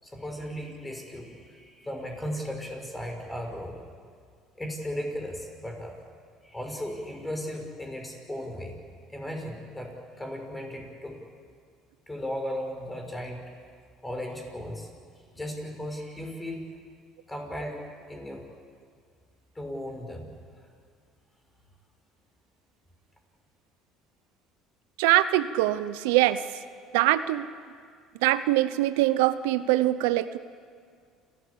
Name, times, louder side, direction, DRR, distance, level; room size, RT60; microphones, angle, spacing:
voice 1, 0.0-3.8 4.6-5.9 6.4-8.8 9.1-11.2 12.1-13.4 14.0-14.9 15.3-16.7 17.3-17.8 18.1-18.4 19.5-20.3, equal, 10° left, 2 dB, 6.1 m, -36 dB
voice 2, 25.0-26.4 26.9-27.5 28.2-30.4, right 15 dB, 85° right, 13 dB, 0.7 m, -23 dB
29.5 x 14.5 x 8.6 m, 2.1 s
supercardioid pair, 95°, 0 cm